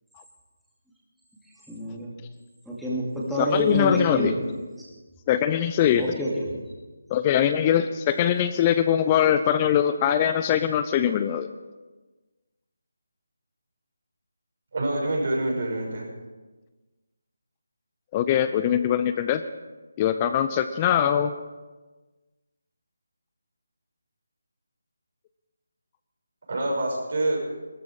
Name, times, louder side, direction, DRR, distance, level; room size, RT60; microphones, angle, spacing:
voice 1, 1.7-2.1 2.7-4.4 6.0-6.6, right 1 dB, ahead, -8 dB, 2.5 m, -27 dB
voice 2, 3.4-4.3 5.3-6.0 7.1-11.5 18.1-19.4 20.0-21.3, left 9 dB, 25° left, 10 dB, 0.6 m, -22 dB
voice 3, 14.7-16.1 26.5-27.5, right 1 dB, 55° right, -1 dB, 6.2 m, -26 dB
18.0 x 13.5 x 4.9 m, 1.2 s
figure-of-eight pair, 155°, 0 cm